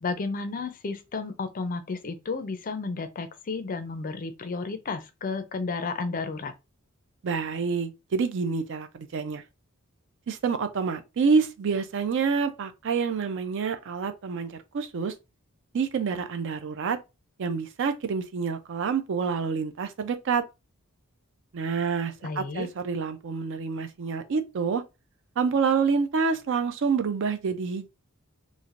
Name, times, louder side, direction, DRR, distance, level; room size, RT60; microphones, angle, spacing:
voice 1, 0.0-6.5 22.2-22.7, left 4 dB, 40° left, 0.4 m, -32 dB
voice 2, 7.2-9.4 10.3-15.1 15.7-17.0 17.4-20.4 21.5-24.8 25.4-27.9, right 5 dB, 55° right, 0.4 m, -27 dB
3.2 x 2.5 x 2.4 m
head